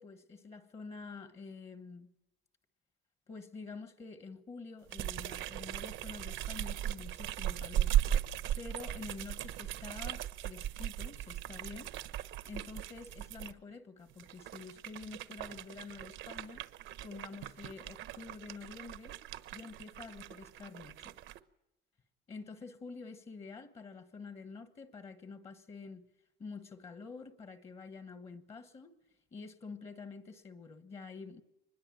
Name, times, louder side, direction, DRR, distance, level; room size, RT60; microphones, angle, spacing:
voice 1, 0.0-2.1 3.3-8.0 8.5-11.9 12.5-16.6 17.0-19.1 19.5-21.1 22.3-26.1 26.4-28.9 29.3-31.4, left 4 dB, 30° left, 1.3 m, -48 dB
sound 1, 4.9-13.5 14.1-21.4, right 12 dB, 75° right, 1.2 m, -38 dB
24.5 x 21.5 x 9.1 m
cardioid pair, 170°, 20 cm